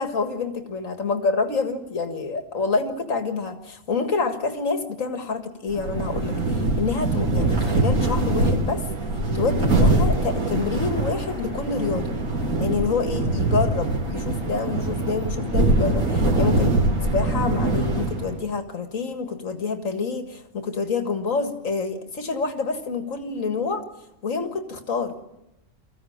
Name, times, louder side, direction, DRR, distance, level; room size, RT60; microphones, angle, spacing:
voice 1, 0.0-8.8 9.3-12.1 12.6-16.8 17.0-23.8 24.2-25.1, left 4 dB, 70° left, 7 dB, 2.1 m, -27 dB
sound 1, 5.7-18.4, right 2 dB, 85° right, 3.7 m, -23 dB
22.5 x 15.0 x 8.7 m, 0.92 s
omnidirectional pair, 1.4 m